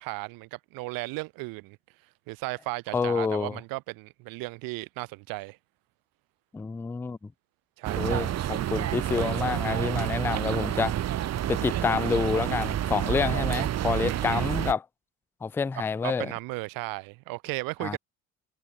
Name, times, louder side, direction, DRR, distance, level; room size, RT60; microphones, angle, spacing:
voice 1, 0.0-1.8 2.3-5.6 7.8-8.4 14.0-14.4 15.7-18.0, right 24 dB, 55° right, 0.8 m, -35 dB
voice 2, 2.9-3.6 6.5-7.2 8.0-11.0 11.5-14.8 15.4-16.3 17.8-18.0, left 5 dB, 5° left, 0.3 m, -28 dB
sound 1, 7.8-14.7, right 12 dB, 40° right, 1.1 m, -29 dB
hypercardioid pair, 60°, 41 cm